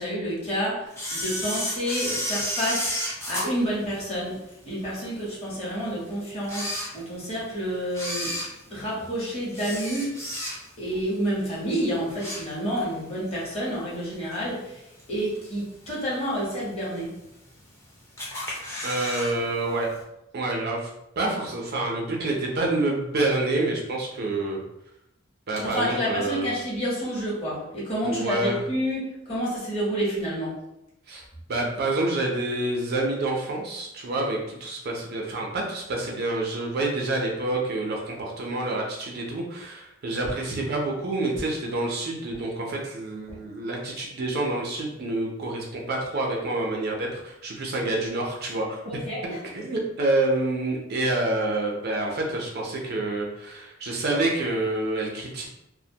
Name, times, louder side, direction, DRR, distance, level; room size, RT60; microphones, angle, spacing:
voice 1, 0.0-2.9 3.3-4.4 4.6-8.3 8.7-10.1 10.8-14.8 15.1-17.1 25.6-30.5 48.9-49.4, equal, 30° left, -6 dB, 1.0 m, -29 dB
Camera, 0.9-4.5 5.0-5.1 5.8-5.9 6.4-7.4 7.9-10.9 11.2-11.5 11.9-12.9 13.3-13.4 14.3-14.4 15.0-15.4 15.8-15.9 16.1-16.2 16.4-16.5 17.2-17.8 18.2-19.3 19.6-19.7 20.0-20.1, equal, 15° left, 0.5 m, -32 dB
voice 2, 18.8-19.9 20.3-20.9 21.2-24.6 25.5-26.5 28.0-28.6 31.1-31.2 31.5-49.0 49.5-55.5, right 2 dB, 50° right, 0 dB, 0.4 m, -27 dB
2.4 x 2.1 x 2.7 m, 0.86 s
head